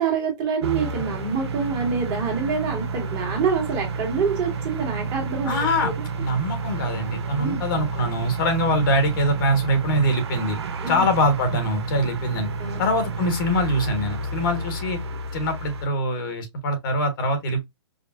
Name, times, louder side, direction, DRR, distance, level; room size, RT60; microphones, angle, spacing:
voice 1, 0.0-5.9 7.4-7.6 10.8-11.0 12.6-12.8, right 5 dB, 25° right, 1.8 m, -26 dB
sound 1, 0.6-15.8, right 3 dB, 65° right, 1.0 m, -30 dB
voice 2, 5.5-5.9 6.2-10.6 10.9-12.5 12.8-15.0 15.3-17.6, equal, 50° left, 1.4 m, -23 dB
5.2 x 2.4 x 2.5 m
hypercardioid pair, 135°, 15 cm